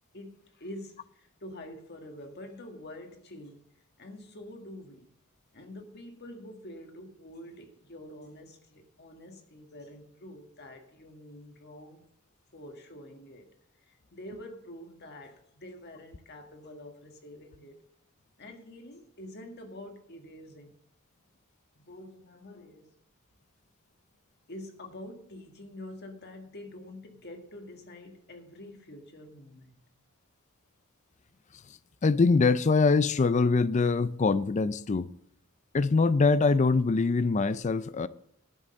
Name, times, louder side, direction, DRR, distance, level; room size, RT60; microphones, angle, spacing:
voice 1, 0.1-5.1 5.5-12.1 12.5-13.5 13.8-17.8 18.4-20.7 21.7-22.9 24.5-29.9, left 1 dB, 50° left, 1.8 m, -46 dB
voice 2, 32.0-35.1 35.7-38.1, left 4 dB, 35° left, 0.4 m, -23 dB
11.0 x 6.5 x 7.5 m
head